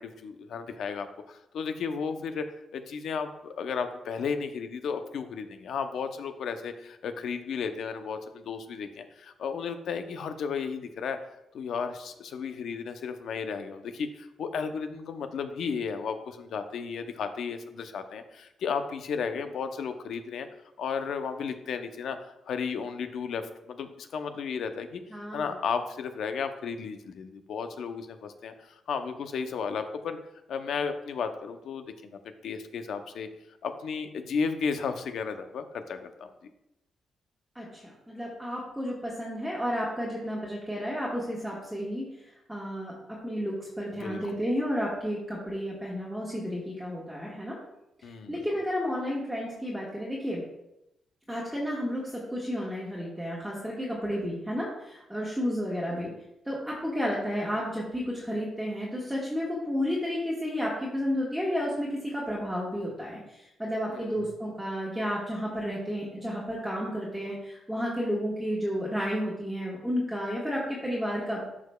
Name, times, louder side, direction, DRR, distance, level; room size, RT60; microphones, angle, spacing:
voice 1, 0.0-2.4 2.7-11.2 11.5-20.5 20.8-25.0 25.3-30.2 30.5-33.3 33.6-36.5 44.0-44.2 48.0-48.4 63.9-64.2, left 6 dB, 75° left, 8 dB, 0.7 m, -34 dB
voice 2, 25.1-25.6 37.5-42.0 42.5-47.6 48.0-50.4 51.3-56.1 56.4-71.5, equal, 5° right, -7 dB, 1.4 m, -32 dB
11.0 x 4.9 x 2.3 m, 0.87 s
cardioid pair, 95°, 0 cm